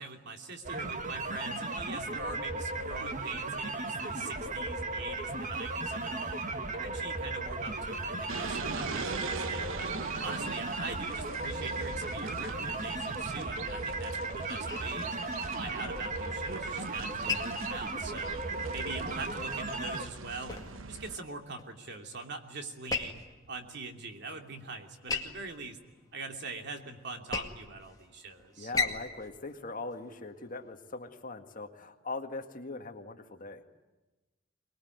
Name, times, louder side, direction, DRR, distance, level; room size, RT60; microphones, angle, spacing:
voice 1, 0.0-9.9 10.2-15.2 15.4-18.4 18.7-25.8 26.1-28.7, right 3 dB, 60° right, 4 dB, 3.0 m, -43 dB
sound 1, 0.6-20.1, right 2 dB, 40° right, 1.8 m, -36 dB
sound 2, 8.3-21.2, right 4 dB, 85° right, 1.1 m, -42 dB
sound 3, 14.7-30.7, left 4 dB, 20° left, 2.2 m, -41 dB
voice 2, 28.6-33.6, left 3 dB, 45° left, 5 dB, 2.0 m, -41 dB
24.0 x 21.0 x 9.5 m, 1.1 s
head